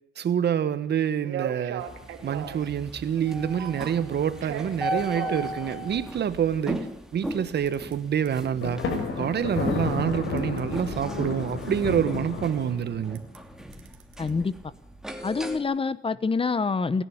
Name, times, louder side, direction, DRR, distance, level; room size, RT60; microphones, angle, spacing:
voice 1, 0.2-1.8 2.2-6.9 7.1-8.8 9.2-13.2, right 8 dB, 60° right, 1.6 m, -27 dB
sound 1, 0.9-1.0 1.2-2.7 3.6-4.0 4.4-5.5 7.7-7.9 8.3-8.4 9.0-9.1 10.4-10.6 11.2-11.3 13.1-13.4 13.7-14.3, right 10 dB, 85° right, 2.5 m, -36 dB
sound 2, 1.8-15.6, equal, 5° right, 2.8 m, -37 dB
Thunder, 8.6-13.2, left 4 dB, 75° left, 5.7 m, -31 dB
voice 2, 14.2-14.5 15.2-17.0, left 4 dB, 25° left, 1.0 m, -26 dB
28.5 x 11.0 x 9.6 m
cardioid pair, 90°, 20 cm